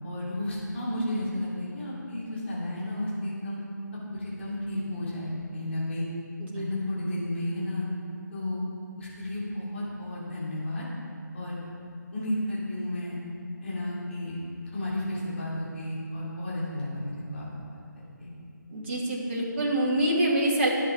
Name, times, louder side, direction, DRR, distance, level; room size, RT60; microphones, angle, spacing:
voice 1, 0.0-3.6 4.1-6.0 6.5-7.8 8.3-8.6 9.0-10.8 11.3-11.6 12.1-13.2 13.6-14.4 14.6-17.4 18.2-18.3, left 1 dB, 35° left, -7 dB, 3.0 m, -32 dB
voice 2, 18.7-20.7, right 1 dB, 35° right, -4 dB, 2.4 m, -25 dB
19.0 x 7.3 x 3.5 m, 2.5 s
figure-of-eight pair, 155°, 10 cm